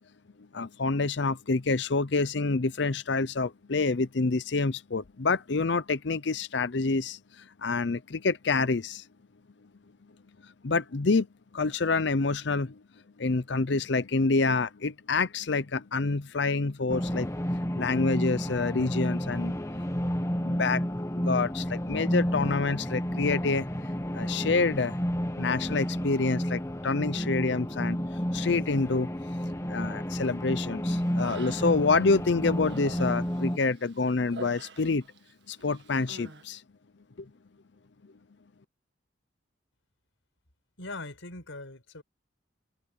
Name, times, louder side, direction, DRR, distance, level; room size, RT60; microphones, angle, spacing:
voice 1, 0.5-9.0 10.6-11.3 11.5-12.8 13.2-17.3 17.8-19.5 20.4-20.9 21.1-23.7 24.1-24.9 25.3-28.0 28.3-29.1 29.7-35.0 35.5-36.6 37.2-37.3, left 3 dB, 65° left, 0.6 m, -27 dB
sound 1, 16.9-33.6, equal, 15° left, 1.2 m, -31 dB
Human voice, 30.9-32.0 32.4-35.3 35.6-36.5, right 2 dB, 60° right, 1.8 m, -46 dB
voice 2, 40.8-42.0, left 2 dB, 85° left, 5.0 m, -41 dB
head